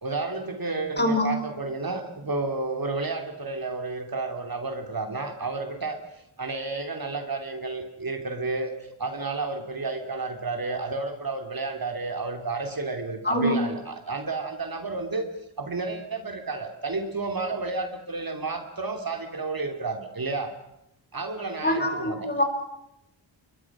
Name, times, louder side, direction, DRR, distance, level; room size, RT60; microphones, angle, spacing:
voice 1, 0.0-6.0 6.4-8.7 9.0-15.3 15.6-20.5 21.1-22.3, right 3 dB, 45° right, 6 dB, 3.0 m, -31 dB
voice 2, 1.0-1.3 13.2-13.5 21.6-22.4, left 1 dB, 20° left, 5 dB, 5.7 m, -24 dB
29.5 x 22.5 x 6.2 m, 0.82 s
wide cardioid pair, 110°, 47 cm